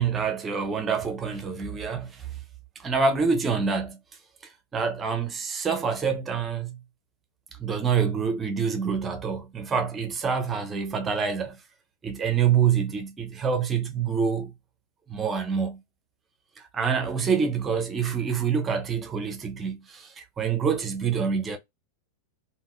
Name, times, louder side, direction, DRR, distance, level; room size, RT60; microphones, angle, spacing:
voice 1, 0.0-2.3 2.8-4.0 4.7-6.8 7.6-11.6 12.0-14.5 15.1-15.8 16.6-21.6, right 6 dB, 20° right, 0.6 m, -26 dB
3.4 x 2.2 x 2.4 m
figure-of-eight pair, 90°, 0 cm